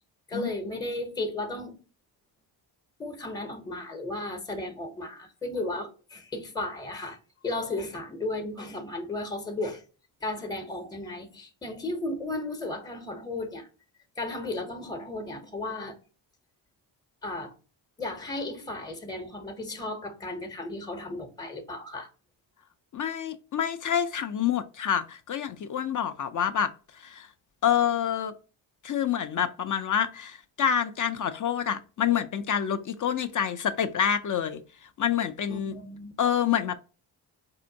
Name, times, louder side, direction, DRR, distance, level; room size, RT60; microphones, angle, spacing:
voice 1, 0.3-1.8 3.0-7.2 7.4-9.8 10.2-13.7 14.2-16.0 17.2-17.5 18.0-22.1 35.5-36.1, left 2 dB, 10° left, 0.7 m, -34 dB
voice 2, 22.9-26.7 27.0-27.3 27.6-28.3 28.8-34.6 35.0-35.8 36.2-36.8, left 9 dB, 45° left, 0.4 m, -27 dB
4.2 x 2.6 x 2.7 m
cardioid pair, 65°, 48 cm